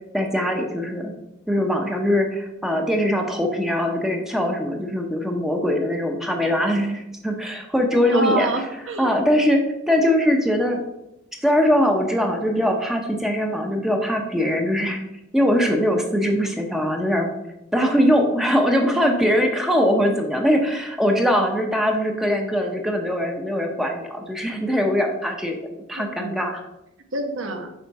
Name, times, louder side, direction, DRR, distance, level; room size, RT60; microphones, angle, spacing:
voice 1, 0.1-1.1 1.5-8.5 9.0-10.8 11.4-15.0 15.3-17.3 17.7-25.6 25.9-26.6, equal, ahead, 2 dB, 0.8 m, -21 dB
voice 2, 8.1-9.1 18.8-19.2 25.9-26.3 27.1-27.7, right 2 dB, 80° right, 4 dB, 1.2 m, -27 dB
6.9 x 5.1 x 4.7 m, 0.87 s
head